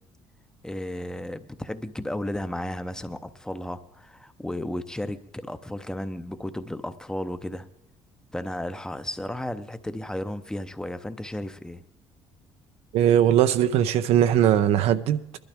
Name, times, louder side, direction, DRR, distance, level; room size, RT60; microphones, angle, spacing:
voice 1, 0.6-7.7 8.3-11.8, left 1 dB, 5° left, 0.6 m, -34 dB
voice 2, 12.9-15.2, right 10 dB, 80° right, 0.7 m, -20 dB
21.0 x 12.0 x 3.5 m
cardioid pair, 130°, 10 cm